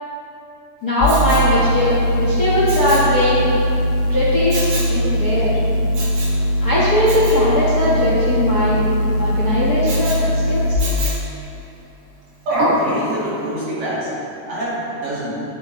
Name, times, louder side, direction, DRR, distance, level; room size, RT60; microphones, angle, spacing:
voice 1, 0.8-3.5 4.1-5.6 6.6-8.9 9.2-10.8, left 1 dB, 45° left, -8 dB, 1.4 m, -19 dB
sound 1, 1.0-10.8, equal, 90° left, 1.2 m, -20 dB
Respiratory sounds, 1.0-1.5 2.7-3.1 4.5-5.0 5.9-6.4 7.1-7.4 9.9-10.2 10.8-11.3 12.5-12.9 13.4-13.5, right 1 dB, 75° right, 3.3 m, -24 dB
voice 2, 12.5-14.2 14.4-15.4, right 1 dB, 55° right, -9 dB, 3.2 m, -27 dB
12.0 x 9.6 x 3.1 m, 2.8 s
omnidirectional pair, 3.4 m